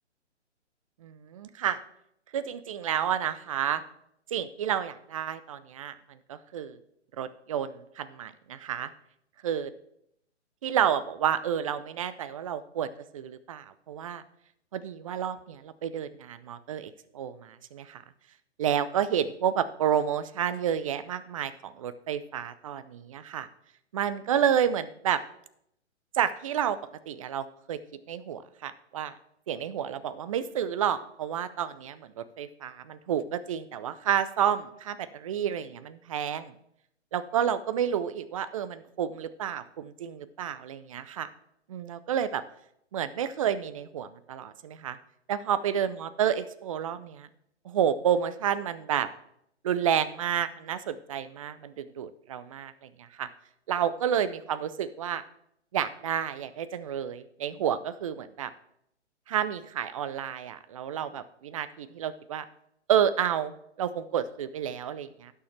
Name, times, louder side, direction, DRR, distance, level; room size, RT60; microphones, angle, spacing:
voice 1, 1.0-1.8 2.3-3.8 4.3-6.0 6.3-6.8 7.2-8.9 9.4-9.7 10.6-14.2 14.7-18.0 18.6-23.5 23.9-25.2 26.1-26.8 27.1-27.8 28.1-29.1 29.5-36.5 37.1-41.3 41.7-42.4 42.9-45.0 45.3-47.3 47.6-49.1 49.6-53.3 53.7-55.2 55.7-58.5 59.3-62.4 62.9-63.5 63.8-65.3, right 9 dB, 30° right, 14 dB, 0.5 m, -30 dB
17.0 x 6.5 x 3.3 m, 0.75 s
figure-of-eight pair, 135°, 36 cm